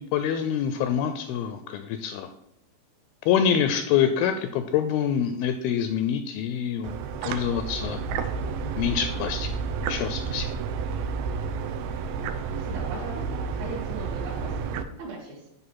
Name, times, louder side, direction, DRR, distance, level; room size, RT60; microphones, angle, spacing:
voice 1, 0.0-2.3 3.3-7.0 7.3-8.0 8.8-9.5 9.9-10.5, left 8 dB, 85° left, 8 dB, 2.2 m, -26 dB
sound 1, 6.8-14.8, right 5 dB, 85° right, 2.0 m, -31 dB
voice 2, 12.6-14.7 15.0-15.4, right 2 dB, 70° right, -7 dB, 3.8 m, -38 dB
10.5 x 3.6 x 6.2 m, 0.77 s
omnidirectional pair, 4.7 m